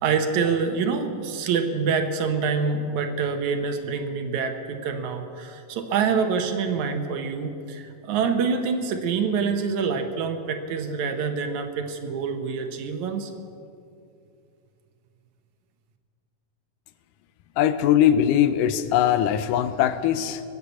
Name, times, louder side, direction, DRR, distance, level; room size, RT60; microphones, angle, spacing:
voice 1, 0.0-13.3, right 5 dB, 70° right, 6 dB, 2.2 m, -26 dB
voice 2, 17.6-20.4, left 10 dB, 85° left, 12 dB, 2.3 m, -21 dB
21.0 x 8.4 x 8.1 m, 2.5 s
omnidirectional pair, 3.8 m